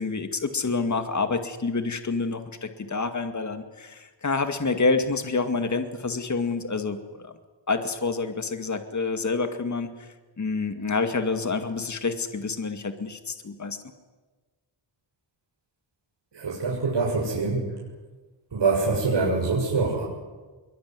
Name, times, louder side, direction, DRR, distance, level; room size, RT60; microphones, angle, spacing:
voice 1, 0.0-7.3 7.7-13.8, left 4 dB, 40° left, 8 dB, 2.3 m, -28 dB
voice 2, 16.3-17.7 18.5-20.0, right 4 dB, 65° right, -4 dB, 7.5 m, -24 dB
25.0 x 23.5 x 9.7 m, 1.3 s
wide cardioid pair, 105°, 45 cm